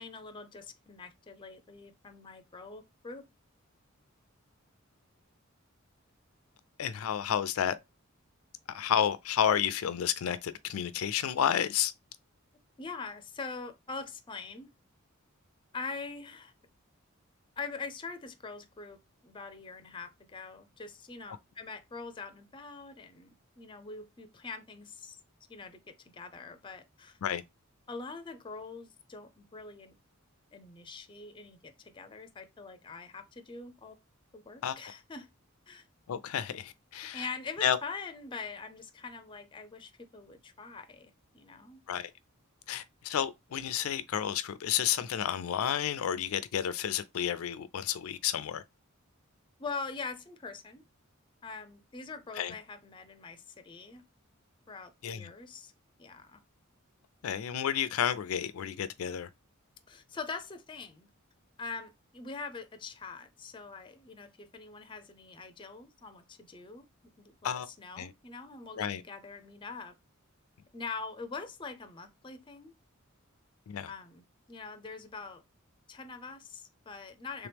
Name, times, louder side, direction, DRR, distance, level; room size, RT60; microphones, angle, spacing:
voice 1, 0.0-3.2 12.8-14.7 15.7-16.5 17.6-25.2 25.5-27.2 27.9-29.9 30.5-34.0 34.3-35.3 35.7-35.9 37.1-41.8 49.6-50.8 51.4-54.0 54.7-55.7 56.0-56.4 59.9-61.1 61.6-66.9 67.2-69.9 70.7-72.7 73.9-74.2 74.5-75.4 75.9-77.5, left 4 dB, 25° left, 0.5 m, -43 dB
voice 2, 6.8-7.8 8.7-11.9 27.2-27.4 34.6-34.8 36.1-37.3 37.6-37.8 41.9-42.1 42.7-48.6 52.3-52.5 55.0-55.3 57.2-59.3 67.4-67.7 68.0-68.1 68.8-69.0 73.7-73.9, left 9 dB, 85° left, 0.4 m, -31 dB
3.4 x 3.0 x 3.4 m
head